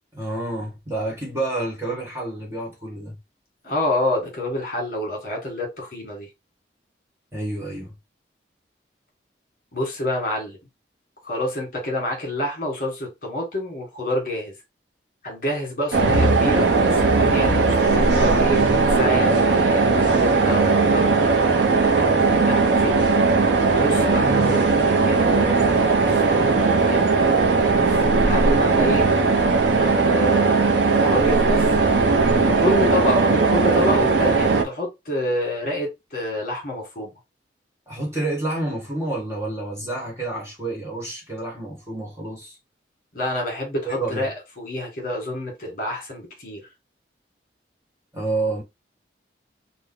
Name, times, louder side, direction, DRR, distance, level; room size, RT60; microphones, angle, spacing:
voice 1, 0.1-3.1 7.3-7.9 37.9-42.6 43.9-44.3 48.1-48.6, right 2 dB, 15° right, 1.4 m, -29 dB
voice 2, 3.6-6.3 9.7-10.6 11.2-14.5 15.2-21.2 21.7-22.9 23.7-27.8 28.2-29.1 29.7-31.6 32.5-37.1 43.1-46.6, left 1 dB, 50° left, 1.6 m, -28 dB
sound 1, 15.9-34.6, right 4 dB, 80° right, 0.7 m, -18 dB
3.3 x 2.2 x 3.7 m
head